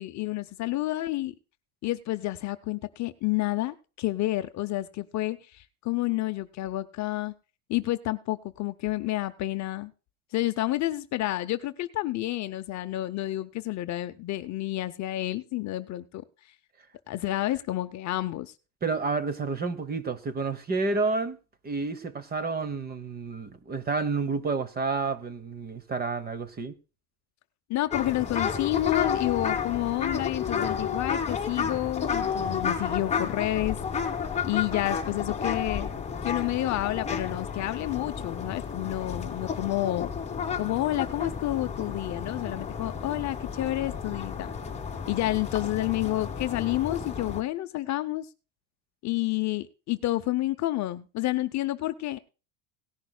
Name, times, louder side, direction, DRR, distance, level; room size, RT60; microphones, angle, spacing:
voice 1, 0.0-1.3 1.8-7.3 7.7-9.9 10.3-16.2 17.1-18.5 27.7-33.8 34.4-35.9 36.2-40.1 40.6-44.5 45.1-48.3 49.0-52.2, left 16 dB, 40° left, 0.7 m, -29 dB
voice 2, 18.8-21.4 21.6-26.7, right 4 dB, 20° right, 1.0 m, -30 dB
sound 1, 27.9-47.4, left 6 dB, 15° left, 1.4 m, -32 dB
18.0 x 10.5 x 2.2 m
cardioid pair, 145°, 44 cm